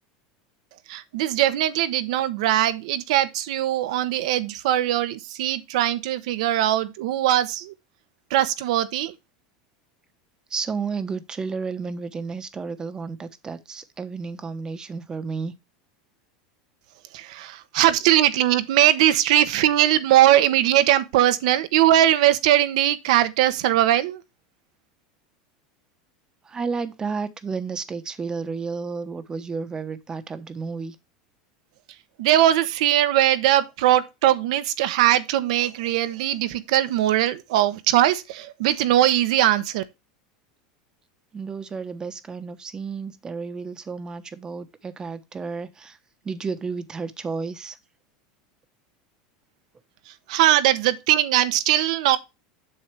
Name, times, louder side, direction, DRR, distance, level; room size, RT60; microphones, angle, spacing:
voice 1, 0.9-7.7 8.3-9.1 17.1-24.2 32.2-39.8 50.1-52.2, right 13 dB, 75° right, 1.1 m, -20 dB
voice 2, 10.5-15.5 26.4-31.0 41.3-46.0 46.2-47.8, right 5 dB, 20° right, 1.1 m, -32 dB
7.9 x 6.8 x 3.3 m
supercardioid pair, 125°, 4 cm